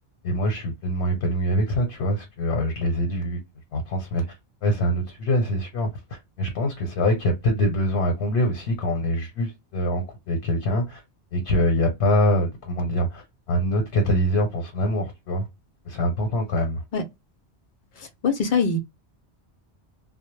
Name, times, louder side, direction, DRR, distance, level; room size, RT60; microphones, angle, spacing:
voice 1, 0.2-3.4 3.7-4.2 4.6-11.0 11.3-15.4 15.9-16.8, equal, 90° left, 1.0 m, -24 dB
voice 2, 18.0-18.8, left 4 dB, 60° left, 0.6 m, -23 dB
2.1 x 2.0 x 3.0 m
omnidirectional pair, 1.1 m